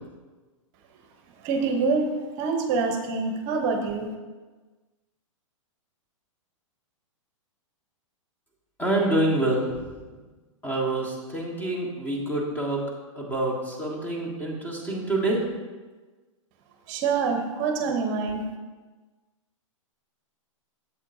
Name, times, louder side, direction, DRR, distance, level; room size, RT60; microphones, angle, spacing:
voice 1, 1.4-2.1 2.4-4.1 16.9-18.5, right 4 dB, 40° right, 5 dB, 0.8 m, -25 dB
voice 2, 8.8-9.7 10.6-12.8 13.1-15.4, right 2 dB, 10° left, -2 dB, 1.6 m, -26 dB
8.0 x 7.2 x 2.7 m, 1.3 s
hypercardioid pair, 120°, 17 cm